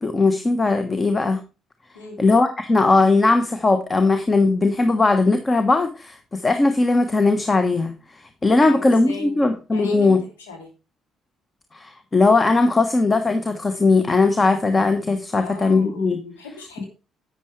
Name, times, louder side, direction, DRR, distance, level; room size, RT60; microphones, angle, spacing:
voice 1, 0.0-1.4 2.2-10.2 11.7-16.2, left 3 dB, 30° left, 8 dB, 1.2 m, -19 dB
voice 2, 8.5-9.4 9.7-10.7 15.3-16.9, left 4 dB, 90° left, 2 dB, 2.9 m, -38 dB
11.0 x 8.9 x 3.3 m, 0.32 s
hypercardioid pair, 50°, 0 cm